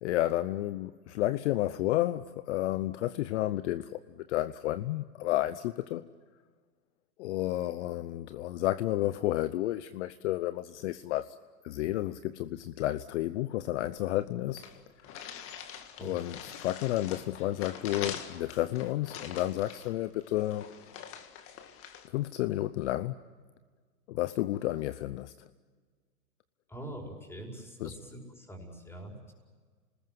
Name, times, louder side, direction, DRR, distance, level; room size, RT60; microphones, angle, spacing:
voice 1, 0.0-6.0 7.2-11.3 11.6-14.6 16.0-20.7 22.1-23.2 24.1-25.3 27.8-27.9, left 15 dB, 50° left, 13 dB, 0.8 m, -31 dB
sound 1, 14.2-14.3 14.6-22.1, left 8 dB, 30° left, 2.0 m, -44 dB
voice 2, 26.7-29.3, right 1 dB, 5° left, 1 dB, 5.2 m, -44 dB
28.5 x 20.0 x 7.6 m, 1.5 s
hypercardioid pair, 135°, 45 cm